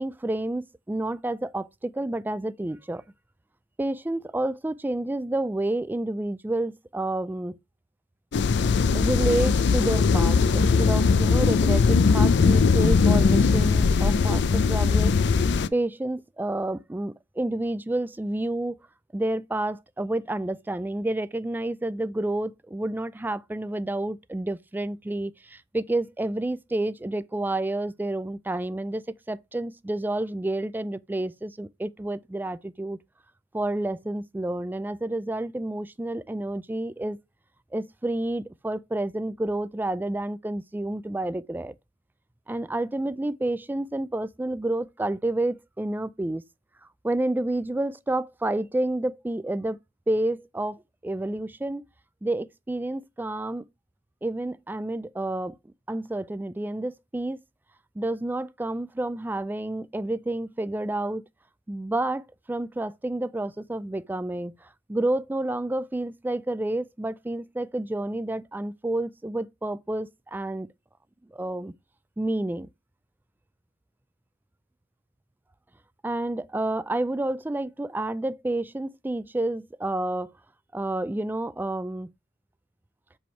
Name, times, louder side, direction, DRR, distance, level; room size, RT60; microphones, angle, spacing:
voice 1, 0.0-3.0 3.8-7.6 8.9-15.2 15.7-18.8 19.1-33.0 33.5-37.2 37.7-41.7 42.5-46.4 47.0-49.8 50.1-51.8 52.2-53.7 54.2-55.6 55.9-57.4 58.0-61.2 61.7-70.7 71.3-71.7 72.2-72.7 76.0-80.3 80.7-82.1, right 1 dB, 10° right, 0.3 m, -29 dB
sound 1, 8.3-15.7, left 5 dB, 65° left, 0.4 m, -20 dB
7.6 x 3.4 x 4.4 m
head